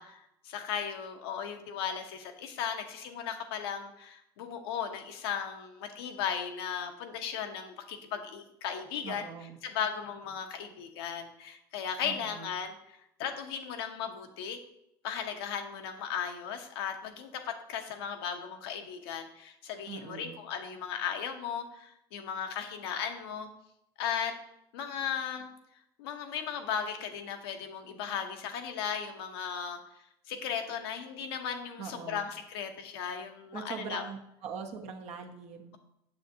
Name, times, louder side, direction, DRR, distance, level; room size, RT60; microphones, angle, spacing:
voice 1, 0.0-9.2 9.6-14.6 15.0-23.5 24.0-24.3 24.7-25.5 26.0-29.8 30.3-34.1, left 8 dB, 85° left, 5 dB, 0.9 m, -36 dB
voice 2, 9.0-9.6 12.0-12.5 19.9-20.4 31.8-32.3 33.5-35.8, right 6 dB, 60° right, 3 dB, 1.1 m, -42 dB
6.9 x 6.6 x 2.8 m, 0.79 s
supercardioid pair, 80°, 12 cm